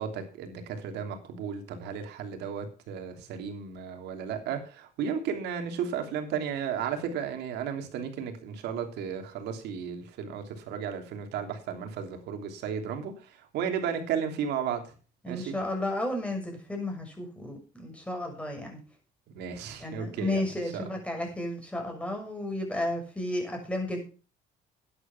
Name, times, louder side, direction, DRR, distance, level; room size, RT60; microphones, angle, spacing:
voice 1, 0.0-14.9 15.3-15.5 19.3-20.4 20.7-20.9, right 7 dB, 80° right, 5 dB, 3.0 m, -34 dB
voice 2, 15.2-18.8 19.8-24.0, left 1 dB, 5° left, 2 dB, 6.5 m, -33 dB
11.5 x 10.0 x 5.9 m, 0.37 s
cardioid pair, 110°, 17 cm